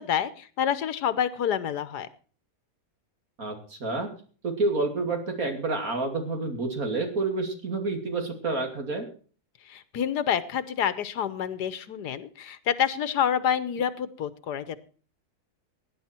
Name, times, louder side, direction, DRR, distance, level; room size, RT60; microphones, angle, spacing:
voice 1, 0.0-2.1 9.7-14.8, left 8 dB, 80° left, 15 dB, 1.5 m, -28 dB
voice 2, 3.4-4.1 4.4-9.1, right 3 dB, 55° right, 4 dB, 3.1 m, -29 dB
17.5 x 10.0 x 4.4 m, 0.40 s
omnidirectional pair, 1.7 m